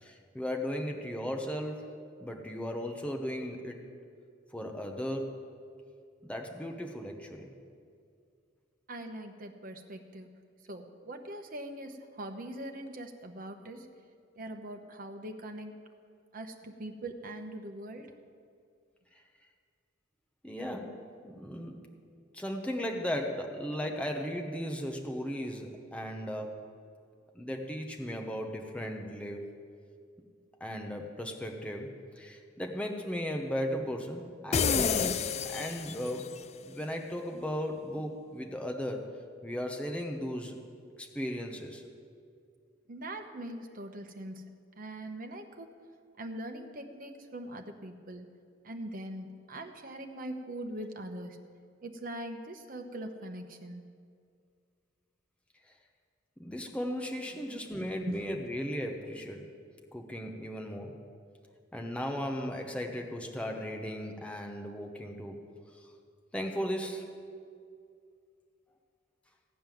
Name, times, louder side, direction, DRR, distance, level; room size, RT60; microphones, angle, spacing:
voice 1, 0.0-1.9 2.2-3.8 4.5-5.5 6.2-7.5 20.4-21.9 22.3-26.6 27.3-29.5 30.6-36.3 36.6-39.2 39.4-40.6 41.0-41.8 56.4-59.5 59.9-60.9 61.7-65.4 66.3-67.1, equal, 5° left, 2 dB, 1.0 m, -36 dB
voice 2, 8.9-10.3 10.7-13.9 14.4-15.7 16.3-18.1 42.9-45.7 46.2-48.3 48.6-51.4 51.8-53.8 57.3-57.4 58.1-58.2, right 1 dB, 45° right, 5 dB, 1.1 m, -42 dB
sound 1, 34.5-36.3, left 6 dB, 35° left, 0.4 m, -29 dB
16.5 x 5.5 x 9.2 m, 2.3 s
head